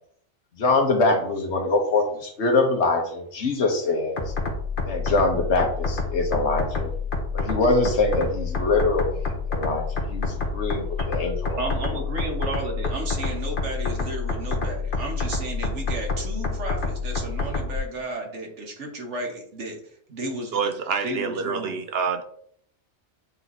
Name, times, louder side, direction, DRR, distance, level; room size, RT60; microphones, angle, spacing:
voice 1, 0.6-4.2 4.8-6.9 7.3-9.2 9.5-11.6, left 3 dB, 70° left, 2 dB, 1.5 m, -23 dB
sound 1, 4.2-17.8, left 3 dB, 50° left, 1.3 m, -28 dB
voice 2, 11.6-19.8 20.1-20.5 21.0-21.8, right 2 dB, 80° right, 1 dB, 1.7 m, -33 dB
voice 3, 20.5-22.2, right 5 dB, 60° right, 7 dB, 0.8 m, -27 dB
8.0 x 3.0 x 4.1 m, 0.63 s
omnidirectional pair, 1.2 m